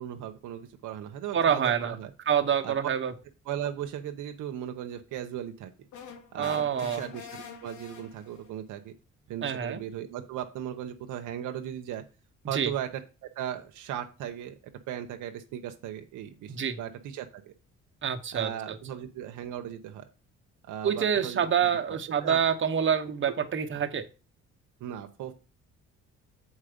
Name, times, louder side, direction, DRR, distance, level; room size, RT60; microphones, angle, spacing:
voice 1, 0.0-2.1 2.6-2.7 3.5-5.7 6.3-8.9 9.3-12.0 12.5-12.9 13.4-17.5 18.3-20.0 20.7-21.4 21.9-22.4 24.8-25.3, right 10 dB, 85° right, 6 dB, 0.8 m, -37 dB
voice 2, 1.3-2.0 2.3-3.1 6.4-7.0 9.4-9.8 12.5-12.7 16.5-16.8 18.0-18.8 20.8-24.1, right 8 dB, 40° right, 6 dB, 1.0 m, -27 dB
sound 1, 5.9-8.5, left 7 dB, 80° left, 1.2 m, -45 dB
7.3 x 4.5 x 5.1 m, 0.33 s
cardioid pair, 90°, 30 cm